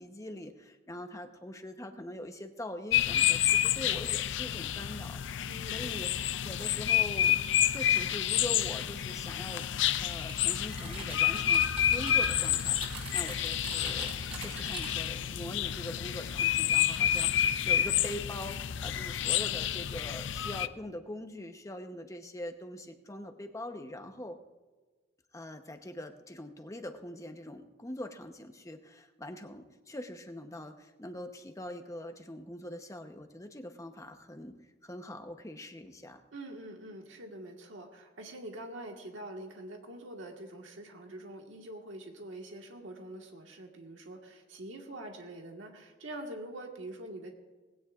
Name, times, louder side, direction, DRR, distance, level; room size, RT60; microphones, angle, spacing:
voice 1, 0.0-6.1 6.4-7.4 7.7-9.6 10.0-11.6 11.9-24.4 25.3-34.6 34.8-36.2, left 1 dB, 15° left, 6 dB, 0.9 m, -43 dB
sound 1, 2.9-20.7, left 10 dB, 65° left, 0.5 m, -29 dB
voice 2, 5.5-6.1 36.3-47.3, right 1 dB, 75° right, 2 dB, 1.6 m, -45 dB
Typing, 10.3-15.2, right 2 dB, 30° right, 4.7 m, -43 dB
20.0 x 17.0 x 2.5 m, 1.3 s
head